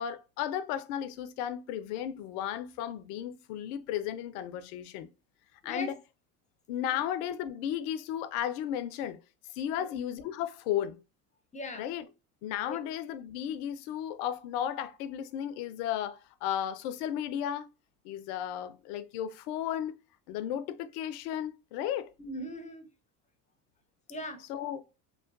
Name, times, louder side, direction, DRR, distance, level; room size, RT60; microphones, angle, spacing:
voice 1, 0.0-5.1 5.6-5.9 6.7-9.2 9.6-11.0 11.8-12.1 12.4-17.7 18.0-20.0 20.3-22.1 24.5-24.8, left 10 dB, 70° left, 0.5 m, -34 dB
voice 2, 5.6-5.9 6.9-7.1 9.7-10.0 11.5-11.9 12.7-12.8 22.2-22.9 24.1-24.5, left 1 dB, 15° left, 0.7 m, -40 dB
2.9 x 2.1 x 2.5 m
hypercardioid pair, 65°, 49 cm